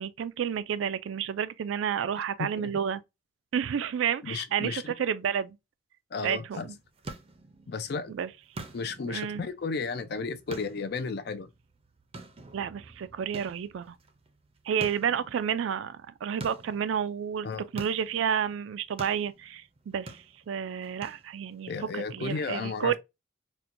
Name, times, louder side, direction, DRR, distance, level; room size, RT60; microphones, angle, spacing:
voice 1, 0.0-3.0 3.5-5.6 6.2-6.7 8.1-8.3 9.1-9.4 12.5-14.0 14.7-17.5 17.7-23.0, right 8 dB, 85° right, 0.3 m, -30 dB
voice 2, 2.4-2.7 4.2-4.9 6.1-6.7 7.7-8.2 8.7-11.5 17.4-17.7 21.7-23.0, left 4 dB, 55° left, 0.4 m, -33 dB
sound 1, 6.5-21.7, right 2 dB, 30° right, 0.5 m, -47 dB
4.3 x 2.2 x 2.5 m
head